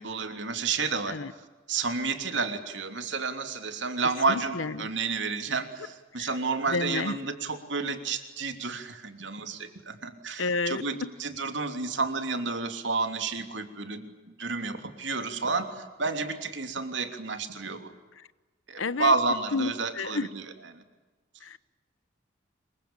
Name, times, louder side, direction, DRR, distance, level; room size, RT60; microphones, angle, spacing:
voice 1, 0.0-1.2 1.7-14.1 14.4-17.9 18.7-20.4 20.7-20.8, right 4 dB, 70° right, 3.1 m, -30 dB
voice 2, 4.3-4.9 6.2-6.3 6.7-7.2 10.4-11.1 18.2-18.3 18.8-19.1 19.5-20.3 21.4-21.6, left 3 dB, 90° left, 1.0 m, -31 dB
27.0 x 23.5 x 8.9 m
head